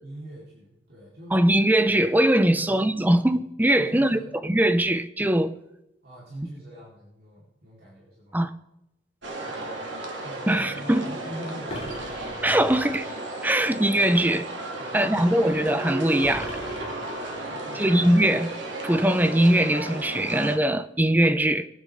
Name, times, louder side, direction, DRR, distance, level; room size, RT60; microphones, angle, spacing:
voice 1, 0.0-1.4 2.5-2.7 3.8-4.3 6.0-8.4 9.5-12.5 14.8-15.4 17.5-18.0, right 1 dB, 55° right, 4.6 m, -43 dB
voice 2, 1.3-5.5 8.3-8.5 10.5-11.1 12.4-13.1 13.4-14.5 14.9-16.5 17.7-18.5 18.8-21.6, right 1 dB, 10° right, 0.6 m, -21 dB
sound 1, 9.2-20.6, right 2 dB, 80° right, 2.5 m, -34 dB
sound 2, 11.7-13.1 16.2-17.7, left 1 dB, 35° left, 2.9 m, -39 dB
23.0 x 9.0 x 3.9 m
head